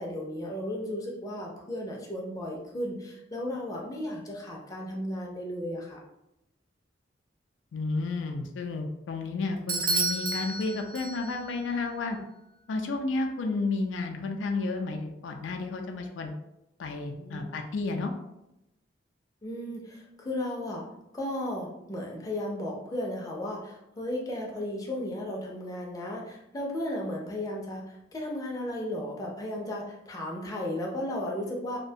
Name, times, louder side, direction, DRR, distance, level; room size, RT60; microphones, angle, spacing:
voice 1, 0.0-6.0 17.1-17.6 19.4-20.9 21.1-31.8, left 1 dB, 20° left, -2 dB, 0.4 m, -35 dB
voice 2, 7.7-12.2 12.7-16.3 16.8-18.1, left 3 dB, 85° left, 4 dB, 0.3 m, -32 dB
Bell / Doorbell, 9.7-11.5, right 3 dB, 50° right, 0.3 m, -30 dB
2.4 x 2.1 x 2.6 m, 0.87 s
head